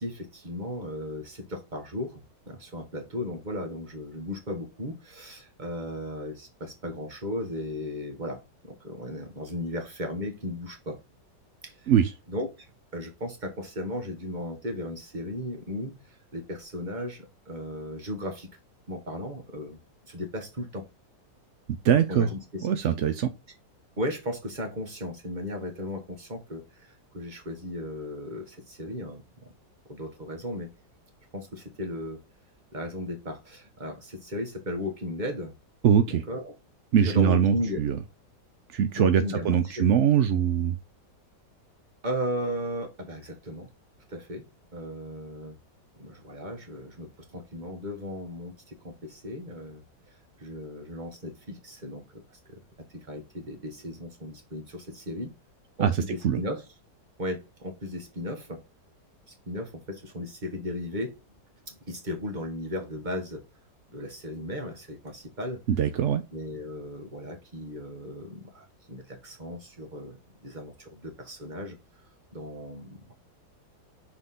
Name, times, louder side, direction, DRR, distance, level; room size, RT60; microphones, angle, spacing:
voice 1, 0.0-11.0 11.6-11.9 12.3-12.5 12.9-18.5 18.9-19.8 20.1-20.9 22.1-23.0 24.0-29.5 29.9-30.7 31.3-32.2 32.7-35.5 36.3-36.5 37.0-37.8 38.9-39.9 42.0-43.7 44.1-44.5 44.7-45.5 45.9-49.8 50.4-52.2 52.5-52.6 52.9-55.3 55.8-56.6 57.2-58.6 59.5-61.2 61.7-63.4 63.9-65.6 66.3-71.8 72.3-73.1, left 1 dB, 25° right, 1.6 m, -36 dB
voice 2, 21.8-22.3 22.6-23.3 35.8-36.2 36.9-38.0 38.7-40.8 55.8-55.9 56.2-56.4 65.7-66.2, right 8 dB, 70° right, 0.6 m, -22 dB
6.1 x 4.9 x 3.7 m
omnidirectional pair, 1.9 m